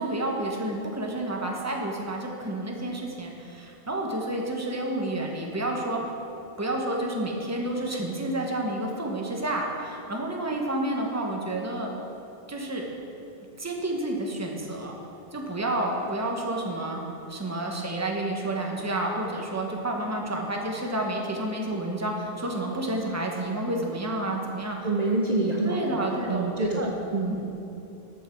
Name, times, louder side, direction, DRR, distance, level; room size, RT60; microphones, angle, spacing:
voice 1, 0.0-6.0 6.6-11.9 12.5-12.9 13.6-15.0 15.3-17.0 17.3-24.9 25.6-26.9 27.3-27.5, right 1 dB, 15° right, 0 dB, 1.0 m, -30 dB
voice 2, 24.8-26.0 26.3-27.3, right 2 dB, 45° right, -1 dB, 0.8 m, -26 dB
13.0 x 6.3 x 4.5 m, 2.8 s
omnidirectional pair, 1.1 m